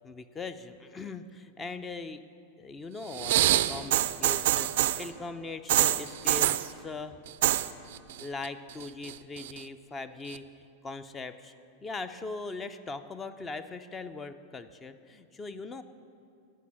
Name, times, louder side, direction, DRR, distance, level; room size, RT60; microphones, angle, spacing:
voice 1, 0.0-2.2 2.6-7.2 8.2-10.5 10.8-11.5 11.8-15.8, left 3 dB, 20° left, 12 dB, 0.4 m, -40 dB
sound 1, 3.1-5.1 5.7-6.7 7.3-7.7 7.9-8.5 8.8-9.6 10.3-10.4, right 14 dB, 55° right, 0.3 m, -25 dB
15.0 x 5.5 x 6.1 m, 2.5 s
figure-of-eight pair, 90°, 0 cm